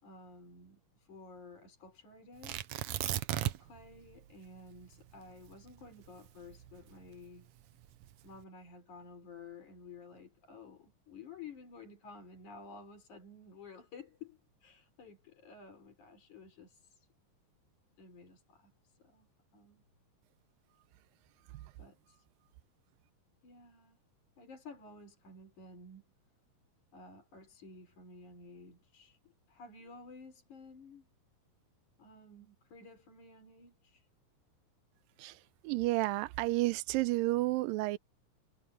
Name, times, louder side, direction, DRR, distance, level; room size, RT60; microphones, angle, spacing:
voice 1, 0.0-2.6 3.3-7.5 8.2-17.1 18.0-19.3 19.5-19.8 21.8-22.3 23.4-24.0 24.4-26.0 26.9-31.1 32.0-34.1, left 4 dB, 60° left, 5.9 m, -53 dB
Tearing, 2.4-3.8 4.1-4.2 4.8-7.1 7.8-8.3, right 14 dB, 70° right, 1.7 m, -36 dB
voice 2, 35.6-38.0, right 19 dB, 90° right, 2.3 m, -31 dB
omnidirectional pair, 4.0 m